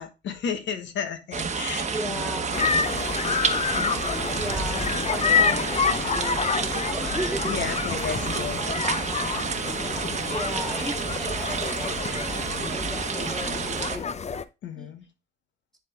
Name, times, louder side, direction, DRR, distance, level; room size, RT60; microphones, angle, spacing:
voice 1, 0.0-2.4 3.7-4.0 7.5-8.6 14.6-15.0, left 7 dB, 70° left, 1.3 m, -33 dB
sound 1, 1.3-14.0, right 5 dB, 35° right, 1.1 m, -30 dB
voice 2, 1.9-2.6 4.3-7.5 10.3-14.1 14.8-14.9, right 1 dB, ahead, 1.8 m, -36 dB
sound 2, 2.5-14.4, left 6 dB, 35° left, 0.6 m, -28 dB
10.0 x 3.8 x 3.6 m
cardioid pair, 90°, 20 cm